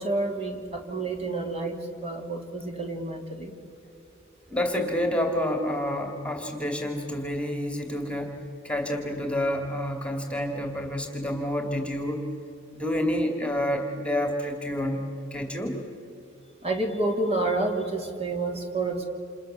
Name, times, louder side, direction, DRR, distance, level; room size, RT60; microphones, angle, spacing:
voice 1, 0.0-3.5 16.6-19.0, right 2 dB, 30° right, 2 dB, 3.3 m, -29 dB
voice 2, 4.5-8.4 8.6-12.2 12.7-15.8, left 1 dB, 5° left, 3 dB, 2.5 m, -28 dB
29.5 x 28.0 x 6.9 m, 2.7 s
head